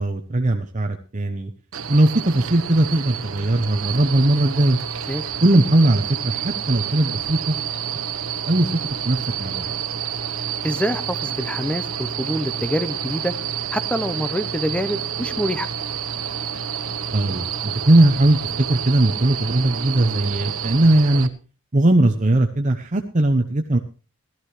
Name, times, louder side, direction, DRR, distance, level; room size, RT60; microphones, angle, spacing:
voice 1, 0.0-1.5 1.9-4.8 5.4-7.5 8.4-8.7 9.0-9.6 17.1-21.3 21.7-23.8, right 1 dB, 35° right, 5 dB, 0.8 m, -19 dB
sound 1, 1.7-21.3, right 8 dB, 75° right, 1.0 m, -29 dB
voice 2, 10.6-13.3 13.7-15.7, equal, 5° left, 12 dB, 0.8 m, -26 dB
16.5 x 13.5 x 3.2 m, 0.34 s
head